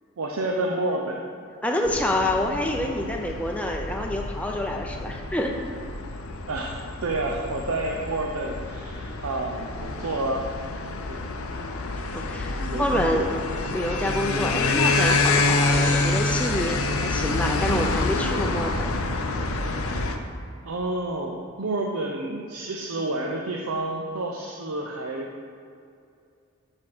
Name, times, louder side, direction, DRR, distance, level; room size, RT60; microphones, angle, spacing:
voice 1, 0.2-1.2 6.5-10.5 11.1-11.3 12.6-13.3 20.6-25.3, right 2 dB, 80° right, 0 dB, 0.7 m, -29 dB
voice 2, 1.6-5.5 12.1-13.4 13.7-18.9, left 1 dB, 5° left, 1 dB, 0.5 m, -27 dB
sound 1, 1.8-20.2, left 3 dB, 75° left, 0.7 m, -27 dB
6.3 x 5.7 x 6.6 m, 2.4 s
head